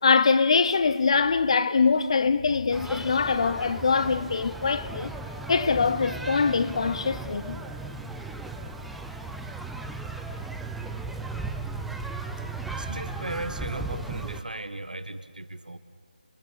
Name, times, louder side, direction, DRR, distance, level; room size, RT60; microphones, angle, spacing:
voice 1, 0.0-5.1 5.5-7.6, left 5 dB, 40° left, 0.8 m, -23 dB
sound 1, 2.7-14.4, right 3 dB, ahead, 0.7 m, -36 dB
voice 2, 12.8-15.8, right 2 dB, 75° right, 1.6 m, -36 dB
29.5 x 22.5 x 6.9 m
figure-of-eight pair, 155°, 5 cm